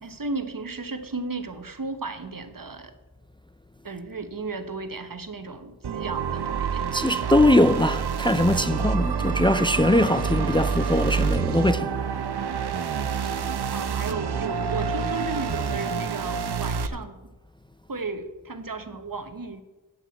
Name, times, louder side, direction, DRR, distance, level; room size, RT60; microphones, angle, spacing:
voice 1, 0.0-2.9 3.8-6.9 13.7-17.2 17.9-19.6, right 3 dB, 55° right, 1.1 m, -34 dB
sound 1, 5.8-16.9, right 6 dB, 75° right, 0.7 m, -27 dB
voice 2, 6.9-11.9, left 1 dB, 10° left, 0.4 m, -21 dB
9.0 x 7.5 x 7.1 m
wide cardioid pair, 40°, 40 cm